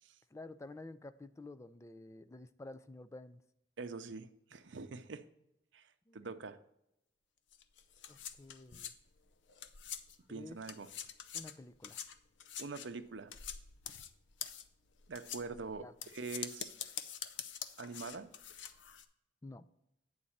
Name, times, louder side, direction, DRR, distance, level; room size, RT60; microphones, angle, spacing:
voice 1, 0.3-3.4 6.1-6.3 8.1-8.9 10.3-10.6 11.3-12.0 15.5-15.9 19.4-19.7, left 2 dB, 15° left, 13 dB, 0.3 m, -51 dB
voice 2, 3.8-5.2 5.7-6.6 10.3-10.9 12.6-13.3 15.1-15.8 16.1-16.7 17.8-18.3, right 4 dB, 70° right, 9 dB, 0.7 m, -44 dB
sound 1, 7.5-10.3 10.6-19.0, left 9 dB, 70° left, 0.6 m, -46 dB
8.7 x 4.0 x 7.1 m, 0.83 s
head